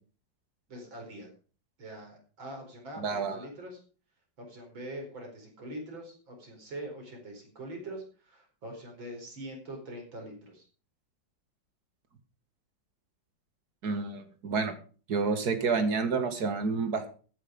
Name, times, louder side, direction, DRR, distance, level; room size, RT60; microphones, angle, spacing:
voice 1, 0.7-1.3 1.8-3.8 4.4-10.7, right 1 dB, 85° right, 2 dB, 5.3 m, -43 dB
voice 2, 3.0-3.4 13.8-14.7 15.1-17.1, right 4 dB, 55° right, 8 dB, 2.3 m, -29 dB
14.0 x 9.4 x 5.3 m, 0.39 s
omnidirectional pair, 2.1 m